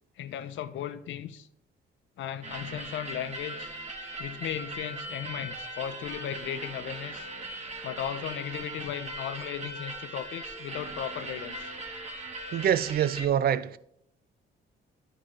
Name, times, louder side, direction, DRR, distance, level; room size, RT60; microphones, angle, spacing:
voice 1, 0.2-1.5 2.2-3.7 4.2-7.3 7.8-11.6, left 10 dB, 75° left, 0.6 m, -36 dB
sound 1, 2.4-13.2, right 2 dB, 35° right, 1.1 m, -39 dB
voice 2, 12.5-13.8, right 9 dB, 50° right, 0.4 m, -25 dB
9.9 x 4.8 x 3.2 m
cardioid pair, 90°, 20 cm